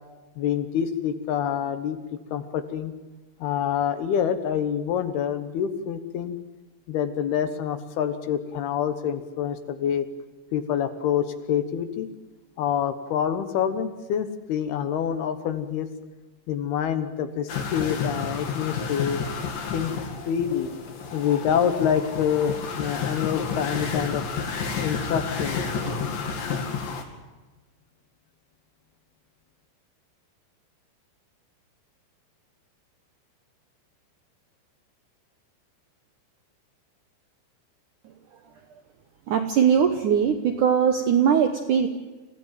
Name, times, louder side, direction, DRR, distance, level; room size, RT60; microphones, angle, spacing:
voice 1, 0.4-2.0 2.3-2.9 3.4-6.4 6.9-10.1 10.5-12.1 12.6-15.9 16.5-19.2 19.7-20.7 21.1-24.2 24.8-25.6, left 8 dB, 70° left, 9 dB, 2.9 m, -26 dB
sound 1, 17.5-27.0, left 5 dB, 55° left, 3.9 m, -31 dB
voice 2, 39.3-41.9, right 7 dB, 70° right, 6 dB, 1.9 m, -21 dB
27.0 x 16.5 x 9.1 m, 1.2 s
omnidirectional pair, 5.2 m